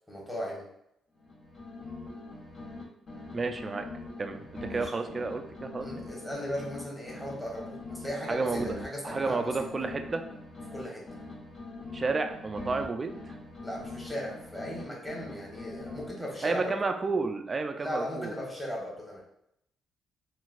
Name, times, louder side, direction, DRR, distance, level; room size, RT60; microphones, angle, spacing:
voice 1, 0.1-0.6 4.7-5.0 5.8-9.7 10.7-11.1 13.6-16.8 17.8-19.2, equal, 10° left, -3 dB, 1.2 m, -37 dB
sound 1, 1.2-2.8 3.1-6.8 7.1-10.8 11.1-14.8 15.1-16.5, left 2 dB, 55° left, 1.3 m, -43 dB
voice 2, 3.3-3.9 4.2-6.1 8.2-8.8 9.0-10.3 11.9-13.4 16.4-18.3, right 3 dB, 30° right, 6 dB, 0.3 m, -31 dB
3.9 x 2.3 x 2.5 m, 0.77 s
cardioid pair, 90°, 0 cm